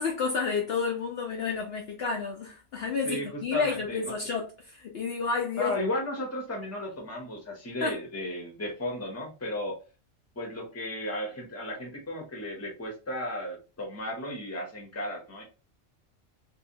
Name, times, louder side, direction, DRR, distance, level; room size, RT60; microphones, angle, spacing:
voice 1, 0.0-5.7 7.8-8.0, left 4 dB, 60° left, 0.7 m, -30 dB
voice 2, 3.0-4.3 5.6-9.8 10.4-15.4, left 1 dB, 15° left, 0.7 m, -34 dB
2.7 x 2.1 x 2.6 m
omnidirectional pair, 1.3 m